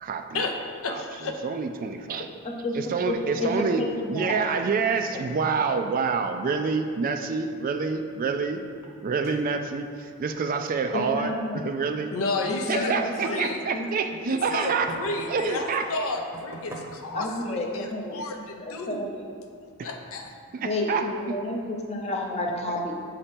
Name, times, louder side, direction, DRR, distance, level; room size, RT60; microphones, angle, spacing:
voice 1, 0.0-0.4 0.9-2.3 2.7-3.8 4.1-8.6 9.0-11.3 11.6-12.1 12.7-14.9 15.3-15.8 20.5-21.0, right 5 dB, 40° right, 6 dB, 0.3 m, -27 dB
voice 2, 0.8-1.3 12.1-13.6 14.3-19.0 19.8-20.3, left 3 dB, 65° left, 3 dB, 0.6 m, -31 dB
voice 3, 2.4-4.3 10.9-11.6 12.5-13.4 13.7-13.9 17.1-18.2 18.6-19.3 20.6-22.9, left 1 dB, 30° left, 1 dB, 0.7 m, -30 dB
sound 1, 8.8-8.9 9.2-9.5 11.9-12.4 13.0-15.6 16.2-17.2, right 1 dB, 10° right, 0.8 m, -44 dB
7.1 x 2.9 x 5.1 m, 2.3 s
head